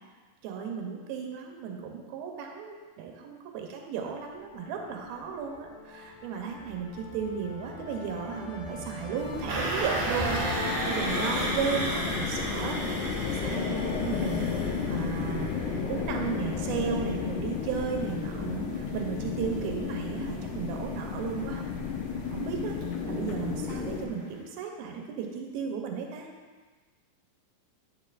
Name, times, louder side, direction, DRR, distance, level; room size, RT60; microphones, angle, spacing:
voice 1, 0.4-10.4 10.9-21.6 22.3-22.8 23.1-26.3, right 6 dB, 85° right, 2 dB, 2.6 m, -35 dB
sound 1, 4.0-13.1, left 3 dB, 60° left, 2.1 m, -40 dB
sound 2, 9.2-24.1, left 5 dB, 75° left, 2.0 m, -33 dB
sound 3, 9.5-23.5 23.9-24.1 24.4-24.5, right 2 dB, 55° right, 2.8 m, -36 dB
9.7 x 6.9 x 2.5 m, 1.4 s
omnidirectional pair, 4.2 m